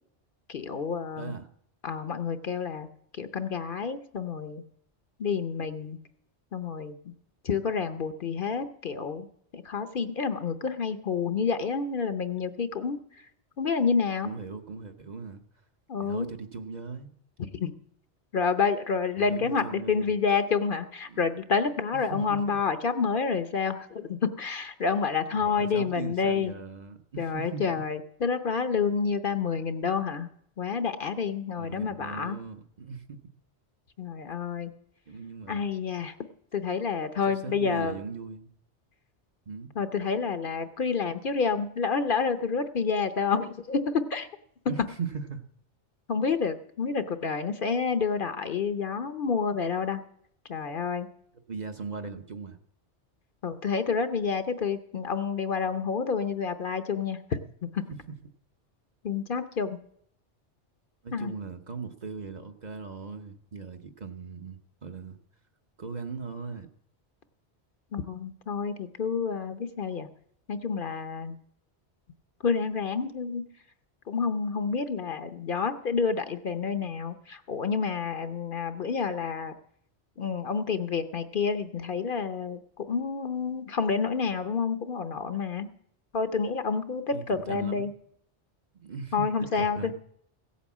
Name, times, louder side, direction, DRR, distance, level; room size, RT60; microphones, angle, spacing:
voice 1, 0.5-1.3 1.8-2.9 3.1-4.6 5.2-6.0 6.5-7.1 7.4-9.3 9.5-13.0 13.6-14.3 15.9-16.3 17.4-17.7 18.3-26.5 27.2-30.3 30.6-32.4 34.0-34.7 35.5-36.1 36.5-38.0 39.8-44.3 46.1-50.0 50.5-51.1 53.4-57.4 57.7-57.8 59.0-59.8 61.1-61.3 67.9-70.1 70.5-71.4 72.4-73.4 74.1-79.5 80.2-85.7 86.1-87.9 89.1-89.9, left 5 dB, 55° left, 11 dB, 0.9 m, -29 dB
voice 2, 1.2-1.5 14.2-15.4 16.0-17.1 19.2-20.1 21.1-21.2 22.1-22.6 25.4-27.8 31.6-33.2 35.1-35.6 37.4-38.5 39.5-39.7 44.7-45.4 51.5-52.6 61.0-65.2 65.8-66.7 87.1-87.9 88.7-89.3 89.5-89.9, right 5 dB, 40° right, 6 dB, 0.9 m, -39 dB
16.0 x 8.5 x 7.2 m, 0.70 s
omnidirectional pair, 1.2 m